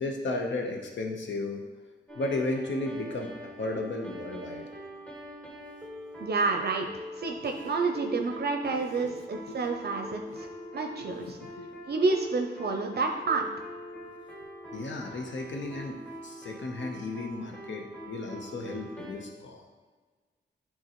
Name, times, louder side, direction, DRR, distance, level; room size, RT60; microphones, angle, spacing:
voice 1, 0.0-1.6 2.1-4.7 7.5-7.8 8.7-9.1 9.5-9.6 10.2-10.4 10.9-11.8 14.0-14.2 14.7-19.7, left 2 dB, 75° left, 2 dB, 1.0 m, -35 dB
sound 1, 2.1-19.1, equal, 5° left, 1.2 m, -44 dB
voice 2, 6.2-10.5 10.7-11.4 11.9-13.5, right 3 dB, 55° right, 3 dB, 0.5 m, -29 dB
9.0 x 3.7 x 3.0 m, 1.4 s
wide cardioid pair, 90°, 19 cm